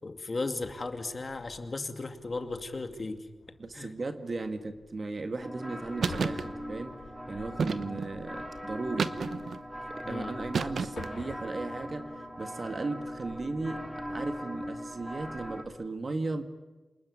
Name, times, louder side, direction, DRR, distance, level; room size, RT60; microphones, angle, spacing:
voice 1, 0.0-3.2 3.7-3.9 7.9-8.0 10.0-10.4, left 3 dB, 40° left, 7 dB, 2.4 m, -36 dB
sound 1, 0.6-15.8, left 4 dB, 75° left, 3.8 m, -52 dB
voice 2, 3.6-6.9 7.3-9.1 9.9-16.4, right 3 dB, 40° right, 8 dB, 1.9 m, -36 dB
sound 2, 5.4-15.6, equal, 5° right, 2.6 m, -40 dB
sound 3, 6.0-6.4 7.6-8.1 9.0-9.6 10.5-11.2, right 5 dB, 75° right, 1.0 m, -30 dB
28.0 x 20.0 x 9.6 m, 1.2 s
wide cardioid pair, 90°, 0 cm